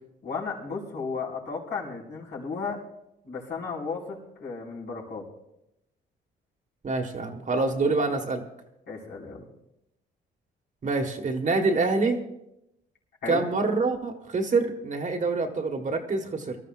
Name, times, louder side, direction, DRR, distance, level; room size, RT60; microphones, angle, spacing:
voice 1, 0.2-2.8 3.2-5.2 8.9-9.4 13.2-13.4, left 4 dB, 60° left, -5 dB, 5.3 m, -34 dB
voice 2, 6.8-8.4 10.8-12.2 13.3-16.6, right 3 dB, 40° right, 4 dB, 1.7 m, -26 dB
24.5 x 13.5 x 2.5 m, 0.85 s
cardioid pair, 90°, 20 cm